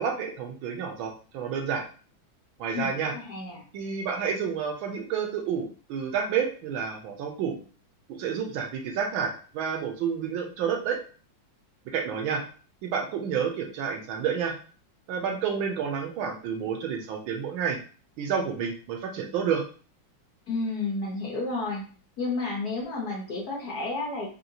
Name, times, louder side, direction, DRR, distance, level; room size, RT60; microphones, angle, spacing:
voice 1, 0.0-1.8 2.6-3.1 3.7-7.6 8.1-11.0 11.9-12.4 12.8-14.5 15.1-17.8 18.2-19.6, right 7 dB, 90° right, 2 dB, 1.5 m, -29 dB
voice 2, 2.7-3.6 20.5-21.8 22.2-24.3, left 3 dB, 60° left, -3 dB, 1.3 m, -31 dB
4.5 x 2.8 x 2.7 m, 0.39 s
omnidirectional pair, 2.2 m